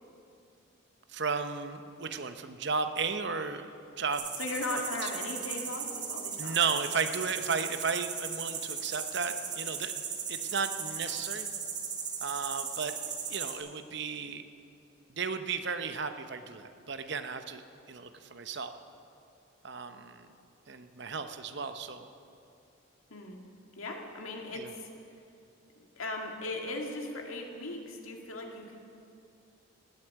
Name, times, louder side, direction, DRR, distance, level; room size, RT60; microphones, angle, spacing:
voice 1, 1.1-3.7 4.0-4.3 4.7-5.1 6.4-10.0 10.3-11.5 12.2-12.9 13.3-14.4 15.1-17.6 17.9-18.7 19.6-20.3 20.7-22.1 24.5-24.7, right 5 dB, 55° right, 9 dB, 0.8 m, -34 dB
sound 1, 4.1-13.6, right 6 dB, 35° right, 1.7 m, -37 dB
voice 2, 4.4-6.6 23.1-23.4 23.8-24.9 25.8-28.8, left 2 dB, 85° left, 2 dB, 2.0 m, -38 dB
18.0 x 8.4 x 8.9 m, 2.6 s
head